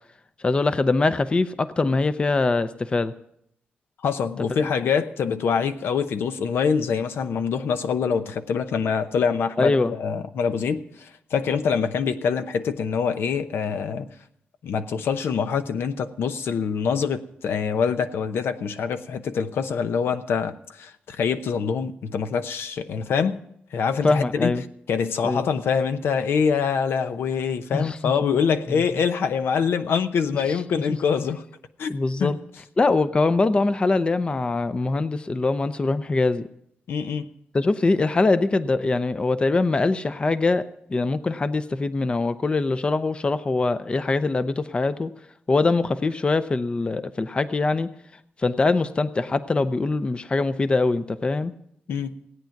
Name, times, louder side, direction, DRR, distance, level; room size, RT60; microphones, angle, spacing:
voice 1, 0.4-3.1 9.6-9.9 24.0-24.6 25.2-25.5 27.7-28.0 30.5-30.6 31.9-32.4 32.8-36.4 37.5-45.1 45.5-47.9 48.4-51.5, left 3 dB, 25° left, 0.6 m, -23 dB
voice 2, 4.0-14.1 14.6-23.4 23.7-24.5 24.9-31.4 31.8-31.9 32.2-32.3 36.9-37.3 51.9-52.2, left 6 dB, 85° left, 0.8 m, -25 dB
17.0 x 9.2 x 5.8 m
wide cardioid pair, 120°, 4 cm